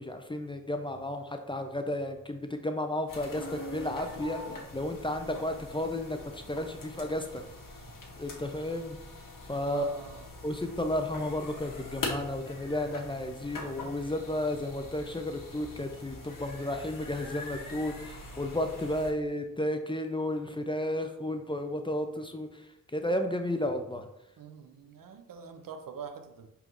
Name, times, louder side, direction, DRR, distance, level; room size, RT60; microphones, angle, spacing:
voice 1, 0.0-4.4 4.7-7.4 8.2-9.0 9.5-9.8 10.4-22.5 22.9-24.1, left 1 dB, 15° left, 6 dB, 0.5 m, -33 dB
sound 1, 3.1-19.1, left 2 dB, 70° left, 1.0 m, -43 dB
voice 2, 9.6-10.3 24.4-26.5, right 6 dB, 80° right, 7 dB, 0.6 m, -44 dB
4.5 x 3.6 x 2.5 m, 0.86 s
cardioid pair, 55°, 34 cm